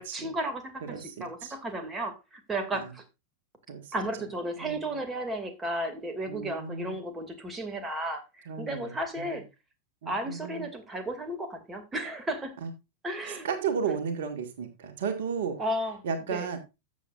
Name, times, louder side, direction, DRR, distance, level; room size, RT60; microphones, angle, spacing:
voice 1, 0.0-3.0 3.9-9.4 10.1-12.5 13.0-13.5 15.6-16.0 16.3-16.5, right 1 dB, 15° right, 2.4 m, -34 dB
voice 2, 0.9-1.5 2.7-2.9 3.7-3.9 4.6-4.8 6.3-7.0 8.5-8.9 10.0-10.5 12.6-12.7 13.3-15.6 16.0-16.6, right 6 dB, 55° right, 1.8 m, -33 dB
14.0 x 7.6 x 2.5 m
figure-of-eight pair, 90°, 0 cm